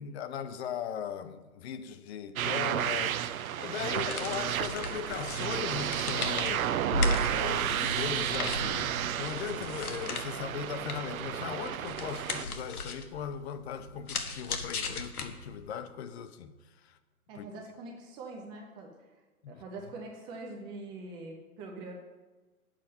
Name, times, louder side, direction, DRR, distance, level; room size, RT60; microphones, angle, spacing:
voice 1, 0.0-6.7 7.2-17.0 17.3-17.5 19.4-19.6, left 8 dB, 45° left, 0.9 m, -38 dB
sound 1, 2.4-12.4, right 10 dB, 70° right, 0.7 m, -32 dB
sound 2, 3.8-15.7, left 2 dB, 85° left, 1.4 m, -37 dB
voice 2, 17.3-19.1 19.5-21.9, right 2 dB, 10° right, 0.4 m, -43 dB
8.9 x 7.6 x 5.4 m
hypercardioid pair, 135°, 43 cm